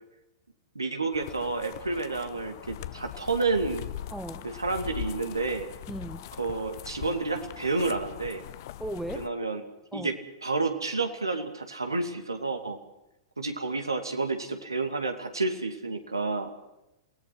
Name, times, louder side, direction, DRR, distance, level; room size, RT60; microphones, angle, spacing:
voice 1, 0.7-3.8 4.4-5.7 6.4-8.4 9.1-9.6 9.9-10.1 10.4-12.8 13.4-16.5, right 3 dB, 85° right, 6 dB, 2.4 m, -30 dB
sound 1, 1.1-9.3, left 12 dB, 55° left, 0.9 m, -41 dB
voice 2, 4.1-4.5 5.9-6.3 8.8-9.3 9.9-10.2, right 1 dB, 5° right, 13 dB, 1.0 m, -37 dB
28.0 x 18.0 x 6.1 m, 0.92 s
figure-of-eight pair, 100°, 2 cm